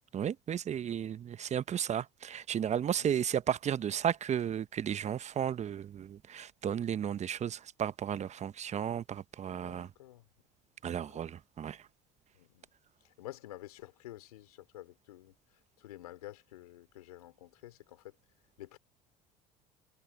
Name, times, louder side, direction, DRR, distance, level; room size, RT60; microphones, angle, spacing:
voice 1, 0.1-9.9 10.8-11.9, right 9 dB, 40° right, 0.9 m, -34 dB
voice 2, 2.8-3.2 9.6-10.2 10.9-11.3 12.3-12.7 13.0-15.3 15.8-18.1 18.6-18.8, left 15 dB, 85° left, 3.0 m, -50 dB
hypercardioid pair, 75°, 19 cm